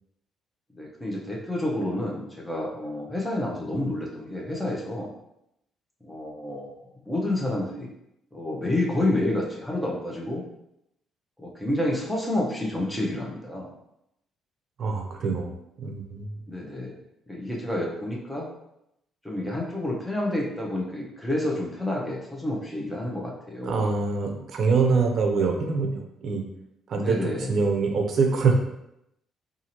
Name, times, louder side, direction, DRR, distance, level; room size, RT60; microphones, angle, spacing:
voice 1, 0.8-5.1 6.0-7.9 8.3-10.4 11.4-13.7 16.5-17.0 17.3-18.5 19.2-23.9 26.9-27.5, left 1 dB, 5° left, -3 dB, 0.7 m, -29 dB
voice 2, 14.8-15.5 15.8-16.3 23.6-26.4 26.9-27.2 27.5-28.5, right 4 dB, 55° right, 3 dB, 0.6 m, -24 dB
2.7 x 2.5 x 2.9 m, 0.81 s
cardioid pair, 100°, 0 cm